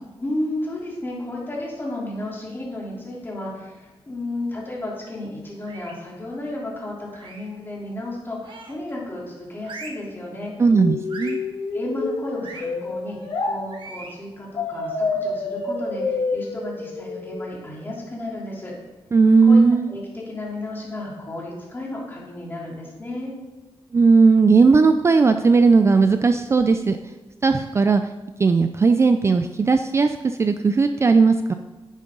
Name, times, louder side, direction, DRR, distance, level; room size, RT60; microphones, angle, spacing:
voice 1, 0.2-10.5 11.7-18.7 19.4-19.6 19.9-23.3, left 1 dB, 20° left, -5 dB, 3.4 m, -33 dB
sound 1, 5.6-6.1 7.1-7.6 8.4-8.9 9.6-10.1 11.1-11.5 12.4-12.7 13.7-14.2, right 3 dB, 55° right, 1.4 m, -40 dB
voice 2, 10.6-11.4 19.1-19.9 23.9-27.0 27.4-28.0 28.4-31.5, right 4 dB, 30° right, 8 dB, 0.4 m, -17 dB
sound 2, 10.7-13.5 14.6-17.6, left 3 dB, 75° left, 2.0 m, -28 dB
10.0 x 9.1 x 3.8 m, 1.1 s
wide cardioid pair, 125°, 10 cm